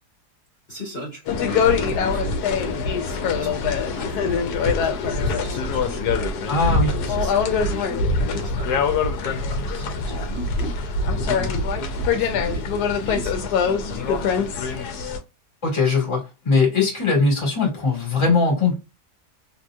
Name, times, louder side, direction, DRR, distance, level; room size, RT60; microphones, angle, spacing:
voice 1, 0.7-6.5 6.9-14.9, left 1 dB, 40° left, 1.3 m, -37 dB
sound 1, 1.3-15.2, left 4 dB, 75° left, 1.1 m, -23 dB
voice 2, 6.5-6.9 15.6-18.8, left 4 dB, 20° left, 1.4 m, -20 dB
2.9 x 2.8 x 2.2 m
omnidirectional pair, 1.8 m